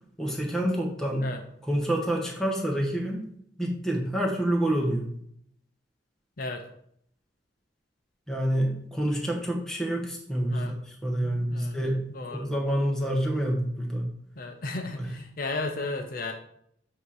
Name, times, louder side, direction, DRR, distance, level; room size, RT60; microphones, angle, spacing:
voice 1, 0.2-1.3 1.6-3.2 3.6-5.1 8.3-10.7 11.0-12.0 12.3-14.1 15.0-15.1, right 1 dB, 5° left, -1 dB, 1.1 m, -27 dB
voice 2, 11.2-11.8 12.1-12.5 14.4-16.3, left 2 dB, 50° left, 4 dB, 0.6 m, -34 dB
8.0 x 2.9 x 4.7 m, 0.68 s
head